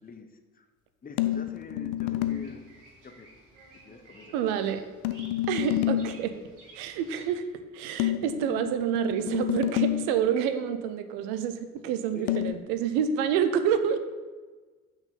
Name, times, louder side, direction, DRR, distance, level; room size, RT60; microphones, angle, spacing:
voice 1, 1.0-2.7 3.0-3.3 3.7-4.3 12.1-12.6, left 4 dB, 20° left, 7 dB, 0.9 m, -44 dB
sound 1, 1.2-2.6 5.0-6.2 8.0-10.2 12.3-12.5, left 14 dB, 60° left, 0.6 m, -29 dB
Bird vocalization bird call bird song, 2.2-7.3, right 2 dB, 45° right, 2.7 m, -54 dB
voice 2, 4.3-4.8 5.5-6.4 6.7-7.4 7.7-14.0, right 8 dB, 65° right, 9 dB, 0.8 m, -28 dB
6.0 x 5.8 x 6.7 m, 1.3 s
figure-of-eight pair, 45°, 42 cm